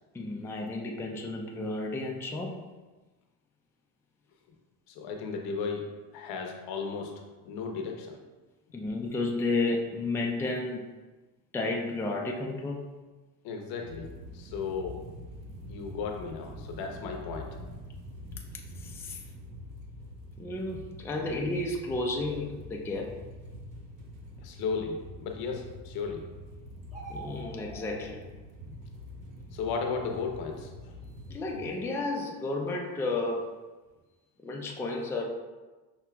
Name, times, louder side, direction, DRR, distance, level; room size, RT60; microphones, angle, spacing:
voice 1, 0.1-2.6 8.7-10.9 11.5-12.8 18.8-19.2 20.4-23.2 27.1-28.2 31.3-33.5 34.4-35.2, left 2 dB, 5° left, 0 dB, 0.4 m, -32 dB
voice 2, 4.9-7.1 7.4-8.2 13.4-14.1 14.3-15.0 15.7-17.5 24.4-26.2 29.5-31.0, left 5 dB, 65° left, 3 dB, 0.8 m, -35 dB
sound 1, 13.8-31.7, left 1 dB, 65° right, 0.8 m, -45 dB
sound 2, 26.8-28.0, right 2 dB, 20° right, 1.5 m, -44 dB
5.7 x 2.9 x 2.3 m, 1.2 s
supercardioid pair, 95°, 39 cm